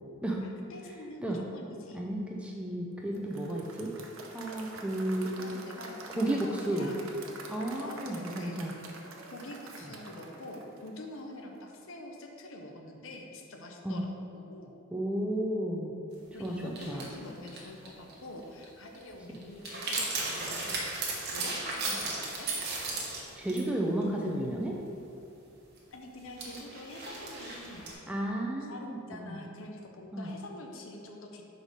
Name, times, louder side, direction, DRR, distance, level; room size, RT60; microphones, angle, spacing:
voice 1, 0.4-2.1 5.4-7.1 7.8-8.6 9.3-14.7 16.3-22.5 25.9-28.1 28.7-31.4, left 1 dB, 60° left, 2 dB, 0.7 m, -45 dB
voice 2, 1.9-3.9 4.3-5.3 6.2-6.9 7.5-8.7 13.8-14.0 14.9-15.9 16.4-17.1 19.3-19.4 23.4-24.8 28.1-29.4 30.1-30.3, right 1 dB, 5° right, -1 dB, 0.4 m, -33 dB
Applause / Crowd, 3.1-11.3, right 3 dB, 70° right, 0.6 m, -47 dB
sound 1, 16.4-16.5 16.8-18.1 18.4-18.6 18.9-19.0 19.3-23.7 24.0-24.1 25.8-25.9 26.4-27.9, right 3 dB, 50° right, 1.0 m, -35 dB
4.7 x 4.1 x 5.2 m, 2.6 s
head